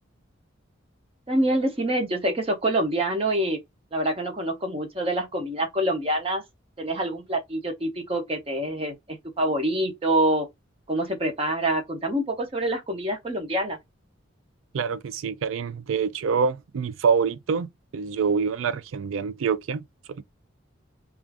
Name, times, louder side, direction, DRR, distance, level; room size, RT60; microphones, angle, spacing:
voice 1, 1.3-3.6 3.9-6.4 6.8-10.5 10.9-13.8, right 1 dB, 30° right, 0.7 m, -26 dB
voice 2, 14.7-20.2, right 6 dB, 80° right, 0.4 m, -26 dB
2.5 x 2.4 x 3.3 m
head